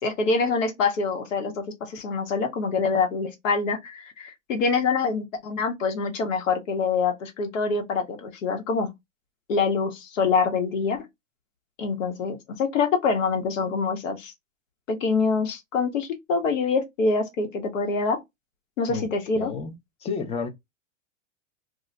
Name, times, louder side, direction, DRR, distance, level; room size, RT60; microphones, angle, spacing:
voice 1, 0.0-8.9 9.5-11.1 11.8-14.3 14.9-18.2 18.8-19.5, left 4 dB, 75° left, 1.1 m, -25 dB
voice 2, 19.4-19.7 20.0-20.5, left 5 dB, 15° left, 0.4 m, -30 dB
2.4 x 2.1 x 3.7 m
hypercardioid pair, 110°, 39 cm